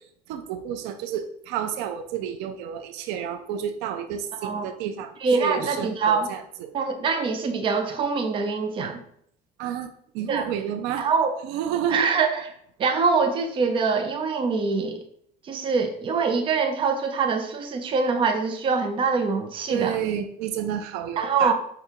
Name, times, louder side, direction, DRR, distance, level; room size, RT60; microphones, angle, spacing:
voice 1, 0.3-5.1 5.4-6.7 9.6-9.9 10.1-11.1 11.4-12.0 19.7-21.5, right 9 dB, 80° right, 7 dB, 0.5 m, -30 dB
voice 2, 4.3-4.7 5.2-6.3 6.7-9.0 10.3-10.5 11.0-11.3 11.9-12.5 12.8-15.0 15.4-20.0 21.2-21.5, right 5 dB, 30° right, 5 dB, 0.6 m, -24 dB
5.0 x 2.3 x 4.4 m, 0.66 s
cardioid pair, 150°, 17 cm